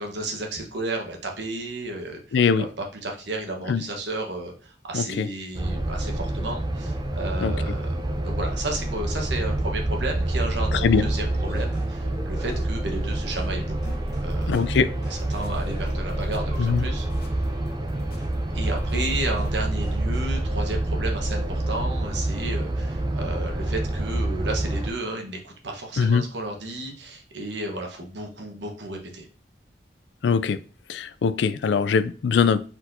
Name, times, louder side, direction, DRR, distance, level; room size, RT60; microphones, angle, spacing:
voice 1, 0.0-2.2 2.6-2.7 3.0-14.7 15.1-17.3 18.5-29.3, right 2 dB, 85° right, 2 dB, 1.2 m, -33 dB
voice 2, 2.3-2.7 3.7-3.9 4.9-5.3 7.4-7.5 10.7-11.0 14.5-14.9 16.6-16.8 26.0-26.2 30.2-30.6 30.9-32.7, left 5 dB, 80° left, 15 dB, 0.4 m, -22 dB
sound 1, 5.5-24.9, right 1 dB, 25° right, 0.4 m, -27 dB
sound 2, 10.8-13.6 13.8-14.3 14.6-14.8 15.0-17.1 18.2-18.4 18.6-19.1 19.4-19.6 19.8-20.3, equal, 20° left, 1.9 m, -45 dB
sound 3, 13.8-19.6, left 1 dB, 55° left, 0.9 m, -48 dB
4.3 x 4.2 x 2.6 m, 0.39 s
head